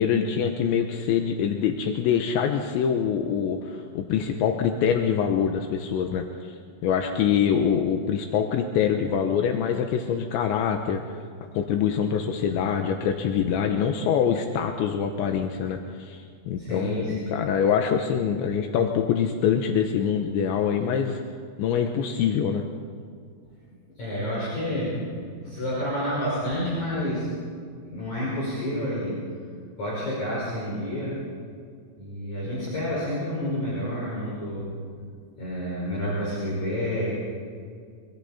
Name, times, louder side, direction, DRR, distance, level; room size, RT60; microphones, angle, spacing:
voice 1, 0.0-6.6 6.8-11.0 11.5-21.2 21.6-22.6, left 7 dB, 80° left, 4 dB, 3.3 m, -24 dB
voice 2, 16.6-17.4 24.0-27.3 27.9-29.3 29.8-31.2 32.0-34.7 35.4-37.1, equal, 40° left, -7 dB, 6.4 m, -29 dB
26.5 x 24.0 x 4.3 m, 2.2 s
omnidirectional pair, 5.4 m